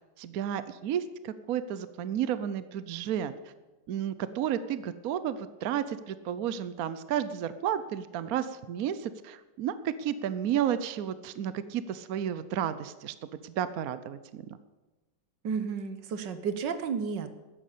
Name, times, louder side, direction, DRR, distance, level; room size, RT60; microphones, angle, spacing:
voice 1, 0.0-3.3 3.9-14.6, right 9 dB, 65° right, 13 dB, 1.0 m, -32 dB
voice 2, 15.4-17.3, right 6 dB, 80° right, 10 dB, 1.8 m, -32 dB
13.0 x 10.5 x 8.4 m, 1.2 s
omnidirectional pair, 1.9 m